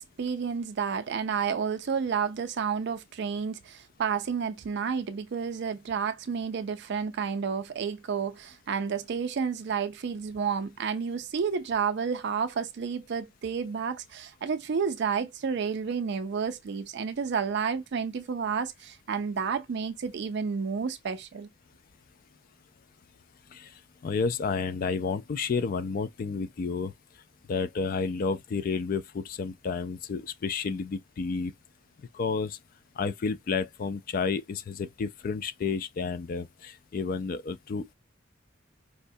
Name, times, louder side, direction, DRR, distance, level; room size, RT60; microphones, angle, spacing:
voice 1, 0.0-21.5, right 6 dB, 60° right, 0.4 m, -31 dB
voice 2, 24.0-26.9 27.5-31.5 32.1-32.6 33.0-37.9, left 5 dB, 45° left, 0.3 m, -31 dB
4.7 x 2.1 x 2.6 m
head